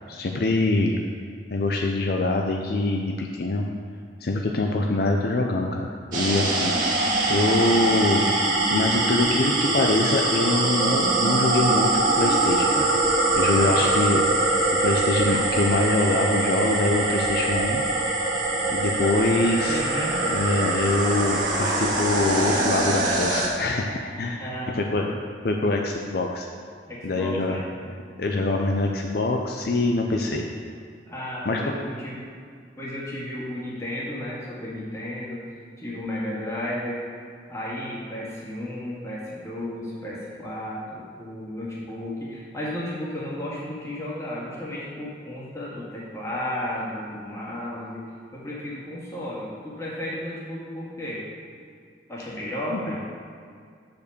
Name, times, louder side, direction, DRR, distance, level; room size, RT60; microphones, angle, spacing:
voice 1, 0.1-1.0 1.5-3.7 4.2-6.7 7.3-8.2 8.7-12.9 13.4-14.2 14.5-17.8 18.7-19.8 20.3-25.1 25.4-26.5 27.0-27.6 28.2-30.5 31.4-31.6 52.7-52.8, left 2 dB, 60° left, 1 dB, 0.5 m, -24 dB
sound 1, 6.1-23.5, right 2 dB, 50° right, 1.9 m, -23 dB
voice 2, 13.5-14.0 19.7-20.2 24.4-25.1 26.9-27.6 31.1-32.3 32.8-35.4 35.8-37.0 37.5-48.1 48.3-51.2 52.1-53.0, left 1 dB, 15° left, -7 dB, 2.0 m, -33 dB
6.8 x 5.3 x 6.7 m, 2.2 s
head